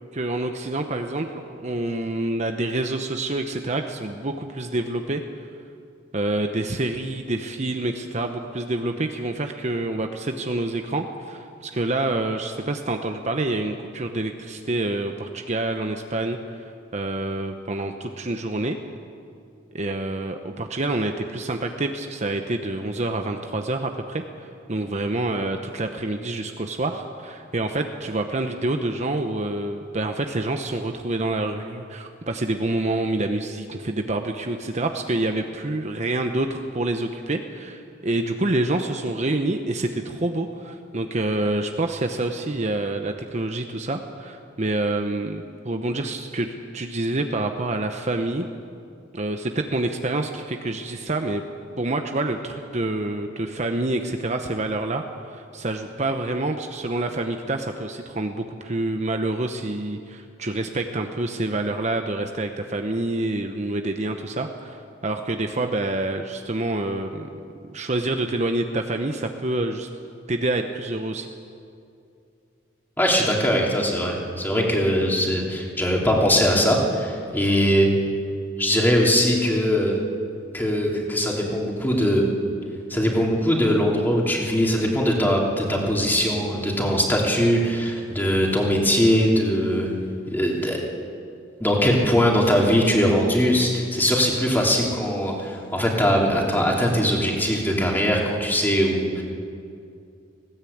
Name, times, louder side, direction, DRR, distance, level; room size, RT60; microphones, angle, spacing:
voice 1, 0.1-5.2 6.1-18.8 19.7-48.4 49.1-51.4 51.8-55.0 55.3-67.3 67.7-69.9 70.3-71.3, right 2 dB, 35° right, 5 dB, 0.9 m, -27 dB
voice 2, 73.0-77.9 78.6-80.0 80.5-82.3 82.9-89.9 90.3-90.8 91.6-99.2, equal, 10° left, -2 dB, 3.0 m, -21 dB
19.0 x 16.5 x 8.6 m, 2.4 s
head